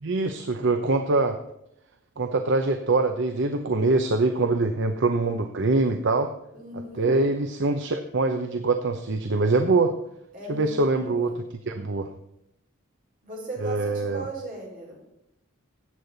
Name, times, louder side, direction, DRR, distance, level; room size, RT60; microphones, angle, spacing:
voice 1, 0.0-1.4 2.2-6.3 7.0-9.9 10.5-11.3 11.7-12.1 13.6-14.2, right 3 dB, 65° right, 7 dB, 0.8 m, -24 dB
voice 2, 6.5-7.1 10.3-11.4 13.2-15.0, right 2 dB, 45° right, -3 dB, 5.4 m, -37 dB
14.5 x 8.7 x 4.0 m, 0.82 s
head